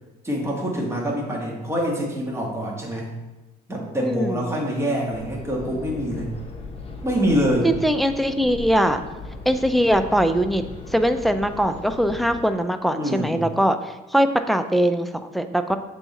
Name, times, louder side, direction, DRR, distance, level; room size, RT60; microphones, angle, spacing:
voice 1, 0.2-3.1 3.7-6.3 7.0-7.7 12.9-13.4, equal, 15° right, -2 dB, 1.4 m, -25 dB
voice 2, 4.0-4.4 7.6-9.0 9.5-10.6 10.9-15.8, equal, ahead, 8 dB, 0.3 m, -21 dB
sound 1, 5.1-12.4, left 2 dB, 35° left, 0.9 m, -38 dB
6.9 x 3.6 x 4.1 m, 1.1 s
cardioid pair, 110°, 17 cm